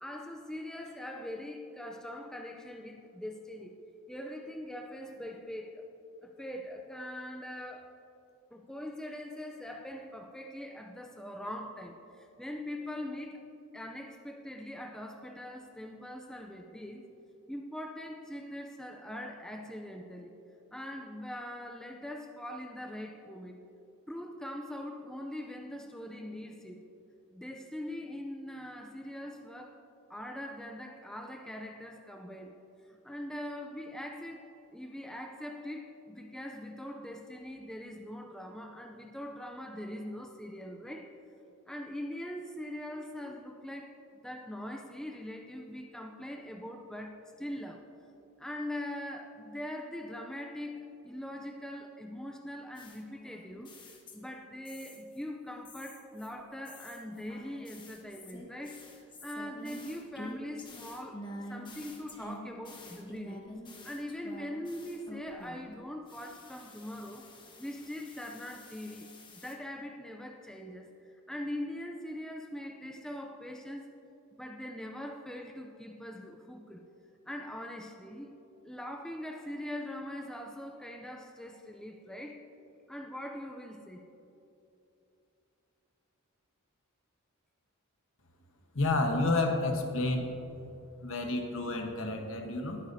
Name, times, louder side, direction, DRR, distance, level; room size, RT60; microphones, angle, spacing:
voice 1, 0.0-3.8 4.1-5.8 6.2-8.0 8.5-17.0 17.5-20.3 20.7-23.6 24.1-26.8 27.3-29.8 30.1-32.6 32.8-41.1 41.7-44.0 44.2-47.9 48.4-53.7 54.1-63.5 63.8-67.3 67.6-73.9 74.4-76.8 77.3-78.4 78.6-82.5 82.9-84.1, left 1 dB, 5° left, 3 dB, 0.5 m, -42 dB
sound 1, 52.7-54.4 54.6-55.2 55.6-65.7 66.1-69.5, left 1 dB, 20° left, 1.2 m, -48 dB
voice 2, 88.7-90.3 91.0-92.8, left 2 dB, 60° left, 4 dB, 1.2 m, -30 dB
20.5 x 9.2 x 2.7 m, 2.9 s
head